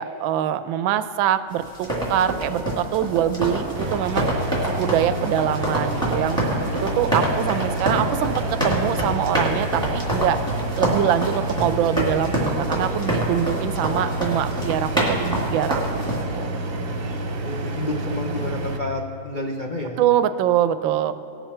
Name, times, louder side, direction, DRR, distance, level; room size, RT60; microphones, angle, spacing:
voice 1, 0.0-4.3 4.7-6.4 6.8-10.4 10.8-16.1 16.3-16.6 20.0-21.1, right 10 dB, 90° right, 12 dB, 1.3 m, -24 dB
sound 1, 1.7-16.2, equal, ahead, 2.4 m, -26 dB
sound 2, 3.7-18.8, right 2 dB, 50° right, 1.2 m, -29 dB
voice 2, 17.4-20.0, left 1 dB, 60° left, 0 dB, 0.5 m, -29 dB
18.5 x 7.1 x 4.4 m, 2.9 s
omnidirectional pair, 2.1 m